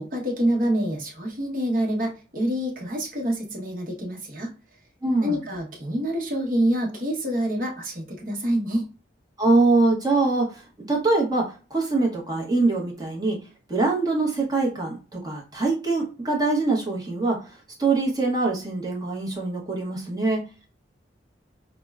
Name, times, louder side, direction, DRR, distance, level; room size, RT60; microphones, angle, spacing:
voice 1, 0.0-4.5 5.2-8.9, equal, 50° right, 0 dB, 1.0 m, -26 dB
voice 2, 5.0-5.4 9.4-13.4 13.7-17.5 17.8-20.5, right 3 dB, 20° right, -2 dB, 0.8 m, -23 dB
5.0 x 2.1 x 2.3 m, 0.35 s
head